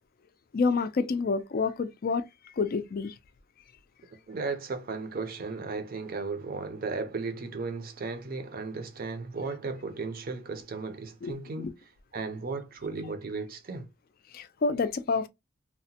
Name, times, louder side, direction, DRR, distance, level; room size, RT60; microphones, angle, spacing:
voice 1, 0.5-3.1 11.2-11.7 14.3-15.3, left 4 dB, 45° left, 0.3 m, -28 dB
voice 2, 4.3-11.7 12.1-13.9, right 4 dB, 45° right, 0.5 m, -35 dB
2.8 x 2.1 x 2.7 m
head